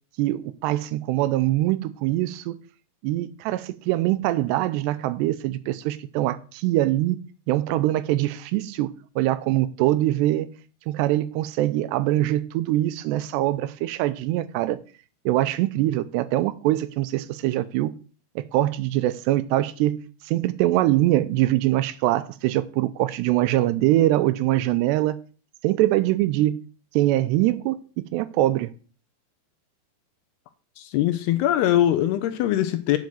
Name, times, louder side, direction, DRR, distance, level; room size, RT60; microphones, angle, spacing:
voice 1, 0.2-2.6 3.0-7.2 7.5-10.5 10.9-14.8 15.3-17.9 18.4-25.2 25.6-26.6 26.9-27.8 28.1-28.7, right 15 dB, 80° right, 2.7 m, -23 dB
voice 2, 30.8-33.0, left 12 dB, 80° left, 2.5 m, -22 dB
7.9 x 5.7 x 7.5 m
omnidirectional pair, 5.0 m